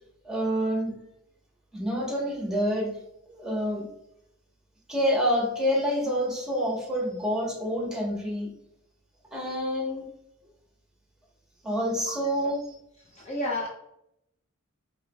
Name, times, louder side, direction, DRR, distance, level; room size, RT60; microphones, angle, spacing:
voice 1, 0.2-0.9 1.7-2.9 3.3-3.8 4.9-8.5 9.3-10.0 11.6-12.7, equal, 5° right, -3 dB, 1.2 m, -27 dB
voice 2, 13.2-13.7, left 1 dB, 35° left, -2 dB, 0.6 m, -30 dB
4.8 x 3.2 x 2.3 m, 0.77 s
head